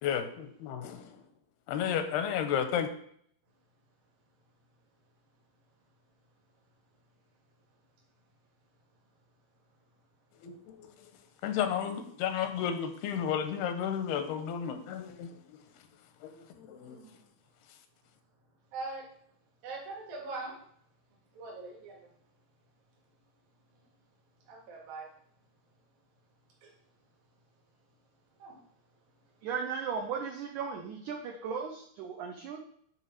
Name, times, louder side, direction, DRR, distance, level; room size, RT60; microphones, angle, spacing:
voice 1, 0.0-1.2 1.7-2.9 10.4-10.9 11.4-15.4 16.2-17.0, left 8 dB, 85° left, 8 dB, 2.7 m, -32 dB
voice 2, 16.8-17.2 18.7-19.1 19.6-20.6 21.3-22.0 24.5-25.1 26.6-26.7 28.4-28.5, right 3 dB, 65° right, -3 dB, 3.6 m, -42 dB
voice 3, 29.4-32.6, right 6 dB, 85° right, 3 dB, 1.7 m, -36 dB
10.0 x 3.6 x 5.6 m, 0.65 s
omnidirectional pair, 4.5 m